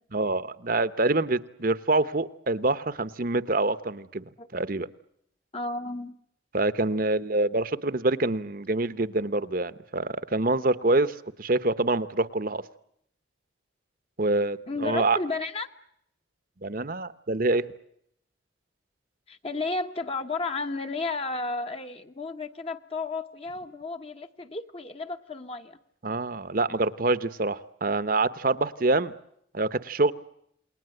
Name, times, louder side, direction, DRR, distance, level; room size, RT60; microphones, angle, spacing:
voice 1, 0.1-4.2 4.5-4.9 6.5-12.6 14.2-15.2 16.6-17.6 26.0-29.1 29.5-30.1, right 2 dB, 45° right, 14 dB, 1.0 m, -26 dB
voice 2, 5.5-6.2 14.7-15.7 19.3-25.8, left 3 dB, 30° left, 6 dB, 1.1 m, -33 dB
29.0 x 21.5 x 7.9 m, 0.72 s
head